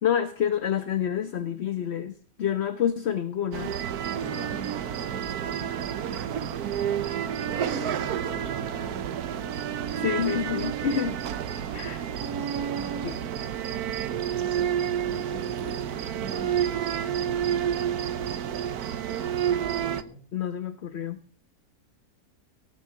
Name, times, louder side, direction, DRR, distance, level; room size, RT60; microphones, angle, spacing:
voice 1, 0.0-2.1 2.4-3.8 10.0-11.2 11.7-12.0 13.0-13.1 20.3-21.2, left 9 dB, 50° left, 10 dB, 1.1 m, -28 dB
sound 1, 3.5-20.0, right 9 dB, 85° right, 1.4 m, -29 dB
voice 2, 4.2-6.4 7.4-10.0 11.5-11.9 12.3-13.3 15.0-16.8 17.1-17.3 19.9-20.2, right 1 dB, 10° left, 0 dB, 6.1 m, -43 dB
17.5 x 6.6 x 7.7 m, 0.42 s
omnidirectional pair, 1.6 m